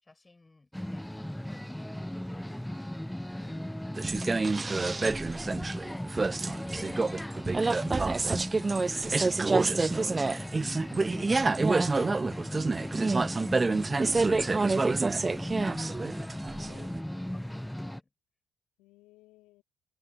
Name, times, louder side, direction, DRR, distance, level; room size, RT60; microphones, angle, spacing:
voice 1, 0.0-6.1 6.5-11.5 16.4-16.9 17.3-18.1, left 3 dB, 20° left, 6.4 m, -57 dB
sound 1, 0.7-18.0, equal, 5° left, 0.7 m, -37 dB
voice 2, 3.4-3.8 16.6-16.9 18.8-19.6, left 19 dB, 70° left, 2.7 m, -59 dB
sound 2, 4.0-17.0, right 3 dB, 25° right, 0.3 m, -28 dB
hypercardioid pair, 50°, 0 cm